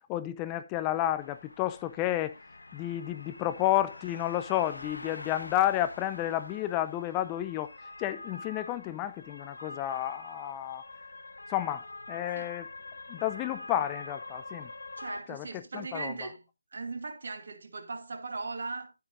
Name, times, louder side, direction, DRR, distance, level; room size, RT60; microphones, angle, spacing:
voice 1, 0.1-2.4 2.7-7.7 8.0-10.8 11.5-12.7 13.1-14.7 15.3-16.1, left 13 dB, 15° left, 0.6 m, -31 dB
sound 1, 1.2-15.2, left 2 dB, 75° left, 1.5 m, -45 dB
voice 2, 15.0-16.4 16.7-18.9, right 3 dB, 55° right, 2.5 m, -38 dB
11.5 x 9.3 x 2.7 m
figure-of-eight pair, 155°, 0 cm